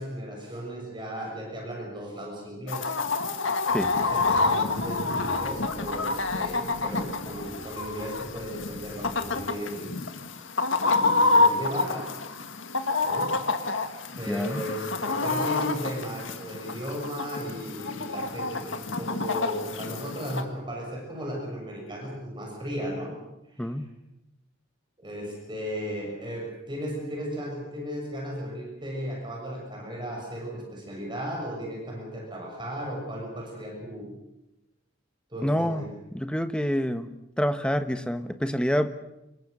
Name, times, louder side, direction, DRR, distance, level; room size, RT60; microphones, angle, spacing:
voice 1, 0.0-3.0 3.9-9.9 10.8-12.1 13.0-13.3 14.2-23.1 23.5-23.7 25.0-34.1 35.3-35.9, equal, 25° right, -1 dB, 6.8 m, -35 dB
Chicken rooster, 2.7-20.4, left 3 dB, 75° left, 1.8 m, -28 dB
Vehicle, 3.7-10.1, equal, 25° left, 5.8 m, -47 dB
voice 2, 14.3-14.6 23.6-23.9 35.4-35.8 36.1-37.1 37.4-38.9, equal, 5° left, 10 dB, 1.1 m, -27 dB
26.5 x 22.5 x 6.7 m, 0.90 s
head